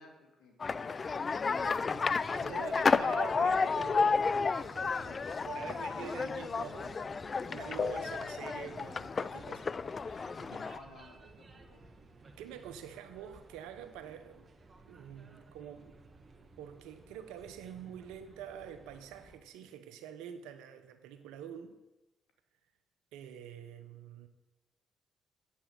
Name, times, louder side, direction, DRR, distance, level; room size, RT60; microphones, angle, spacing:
voice 1, 0.0-3.4 4.9-5.3 5.7-6.1 10.5-11.9, left 2 dB, 70° left, 1 dB, 2.8 m, -55 dB
sound 1, 0.6-10.8, left 4 dB, 45° left, 0.4 m, -32 dB
sound 2, 1.6-19.4, right 3 dB, 45° right, 1.4 m, -55 dB
voice 2, 2.3-5.2 5.4-9.7 10.0-10.6 12.4-14.5 14.9-16.0 16.6-21.8 23.1-24.3, right 9 dB, 85° right, 9 dB, 0.9 m, -46 dB
8.6 x 8.1 x 7.6 m, 1.0 s
hypercardioid pair, 50°, 0 cm